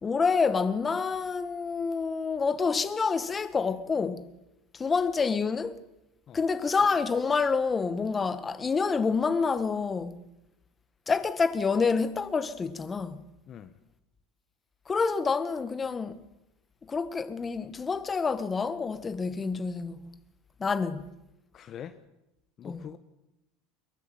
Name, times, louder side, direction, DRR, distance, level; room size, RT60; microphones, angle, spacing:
voice 1, 0.0-4.2 4.7-5.8 6.3-10.2 11.1-13.2 14.9-16.2 16.9-20.1 20.6-21.1 22.6-22.8, left 5 dB, 20° left, 1.7 m, -28 dB
voice 2, 21.5-22.0 22.6-23.0, left 9 dB, 35° left, 1.4 m, -43 dB
24.0 x 22.5 x 9.1 m
supercardioid pair, 120°, 0 cm